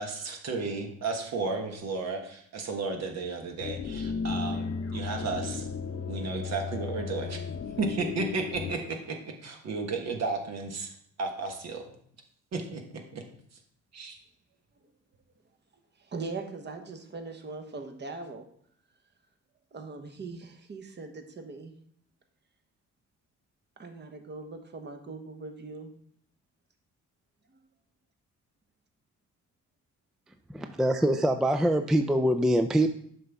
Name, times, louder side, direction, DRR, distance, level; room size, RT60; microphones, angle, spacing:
voice 1, 0.0-5.7 6.1-7.4 7.8-10.9 11.2-11.8 12.5-12.8 13.1-13.2 13.9-14.2, right 3 dB, 60° right, 3 dB, 1.3 m, -33 dB
sound 1, 3.6-8.7, left 5 dB, 50° left, 0.8 m, -34 dB
voice 2, 16.1-18.4 19.7-21.7 23.8-25.9, right 3 dB, 35° right, 6 dB, 1.1 m, -40 dB
voice 3, 30.5-32.9, right 1 dB, ahead, 8 dB, 0.3 m, -24 dB
7.7 x 5.4 x 3.5 m, 0.63 s
cardioid pair, 90°, 30 cm